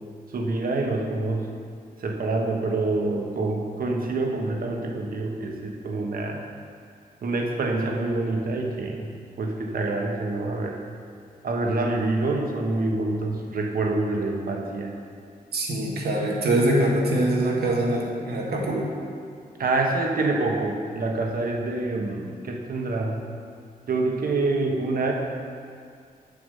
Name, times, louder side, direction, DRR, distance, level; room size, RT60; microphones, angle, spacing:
voice 1, 0.3-1.5 2.0-6.4 7.2-9.1 9.4-10.8 11.4-14.9 19.6-23.2 23.9-25.1, right 2 dB, 65° right, 1 dB, 1.2 m, -26 dB
voice 2, 15.5-18.9, right 1 dB, 85° right, -3 dB, 1.7 m, -23 dB
7.8 x 7.0 x 5.4 m, 2.2 s
wide cardioid pair, 130°, 16 cm